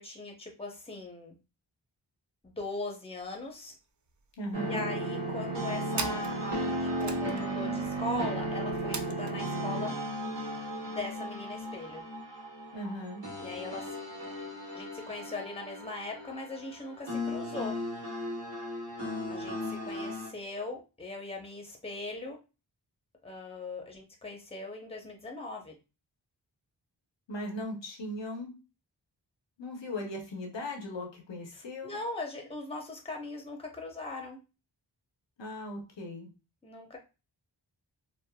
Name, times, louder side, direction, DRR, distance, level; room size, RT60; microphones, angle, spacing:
voice 1, 0.0-1.3 2.4-3.7 4.7-9.9 10.9-12.0 13.4-14.0 14.7-17.7 19.3-22.4 23.2-25.7 31.5-34.4 36.6-37.0, left 2 dB, 15° left, 1 dB, 0.8 m, -40 dB
sound 1, 3.2-3.4 3.7-3.8 4.1-4.7 5.3-9.4, right 5 dB, 40° right, 0.5 m, -41 dB
voice 2, 4.4-4.8 12.7-13.2 27.3-28.6 29.6-32.0 35.4-36.3, left 1 dB, 75° left, 1 dB, 0.9 m, -38 dB
sound 2, 4.5-20.3, right 1 dB, 75° right, 1.3 m, -35 dB
3.3 x 2.1 x 2.2 m, 0.30 s
cardioid pair, 40°, 44 cm